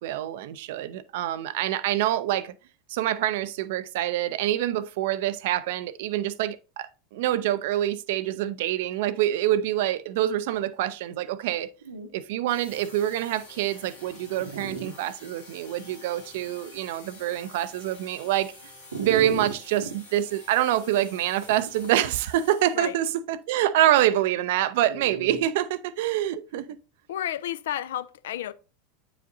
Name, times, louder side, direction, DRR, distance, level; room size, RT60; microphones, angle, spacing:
voice 1, 0.0-2.5 2.9-11.7 12.1-18.5 19.0-26.6, right 12 dB, 65° right, 0.4 m, -26 dB
Dog, 11.4-11.5 11.8-12.1 12.8-12.9 13.5-13.6 14.4-14.9 15.5-15.6 18.9-20.0 21.4-21.9 24.9-25.4, right 5 dB, 85° right, 0.9 m, -34 dB
sound 1, 12.5-23.0, left 2 dB, 90° left, 1.8 m, -48 dB
voice 2, 27.1-28.5, left 11 dB, 70° left, 0.4 m, -31 dB
8.8 x 4.9 x 2.6 m
figure-of-eight pair, 85°, 0 cm